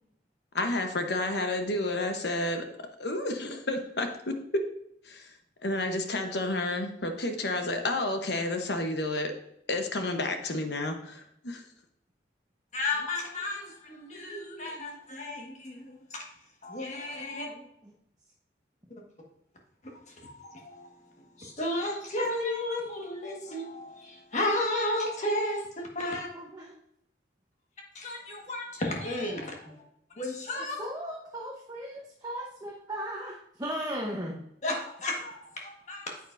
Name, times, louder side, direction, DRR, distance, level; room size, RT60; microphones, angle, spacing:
voice 1, 0.5-2.7 3.0-4.6 5.0-5.3 5.6-9.3 9.7-11.6, left 2 dB, 60° left, 6 dB, 1.0 m, -30 dB
voice 2, 12.7-16.3 16.6-17.5 18.9-19.0 19.8-26.3 27.9-29.8 30.2-30.8 34.6-36.1, left 1 dB, 40° left, 0 dB, 1.5 m, -33 dB
voice 3, 17.3-17.6 26.0-26.7 30.8-34.4, equal, 20° right, -3 dB, 0.9 m, -37 dB
9.0 x 8.0 x 2.6 m, 0.76 s
head